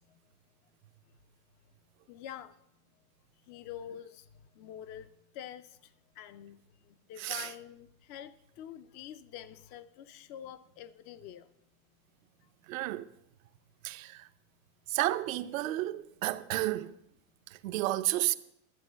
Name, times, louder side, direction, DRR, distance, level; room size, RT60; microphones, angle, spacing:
voice 1, 2.1-2.6 3.5-4.3 4.6-5.9 6.2-6.6 6.8-11.5, left 10 dB, 25° left, 0.4 m, -46 dB
voice 2, 7.2-7.5 12.7-13.1 13.8-14.3 14.9-16.9 17.6-18.4, right 16 dB, 70° right, 0.7 m, -31 dB
12.0 x 7.6 x 5.6 m
supercardioid pair, 140°, 43 cm